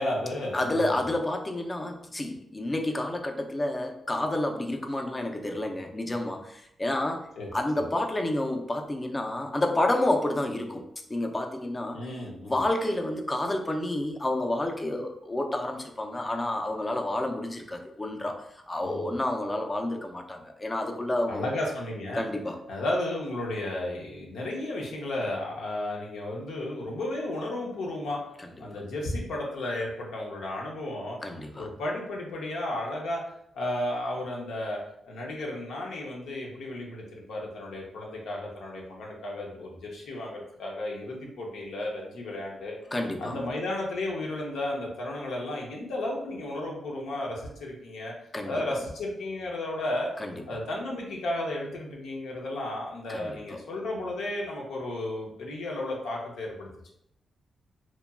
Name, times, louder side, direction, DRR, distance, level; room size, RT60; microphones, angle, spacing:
voice 1, 0.0-1.0 7.4-7.5 7.7-7.9 11.9-12.6 18.8-19.1 21.3-22.3 22.7-28.2 28.6-31.2 31.6-33.2 33.5-34.8 35.1-42.8 43.2-48.1 48.4-50.1 50.5-56.9, left 1 dB, 85° left, -2 dB, 0.6 m, -33 dB
voice 2, 0.5-12.0 12.4-18.4 18.7-21.5 22.1-22.6 31.2-31.7 42.9-43.4 48.3-48.5 50.2-50.3 53.1-53.6, left 1 dB, 25° left, 3 dB, 0.4 m, -30 dB
2.9 x 2.2 x 2.3 m, 0.77 s
cardioid pair, 70°, 0 cm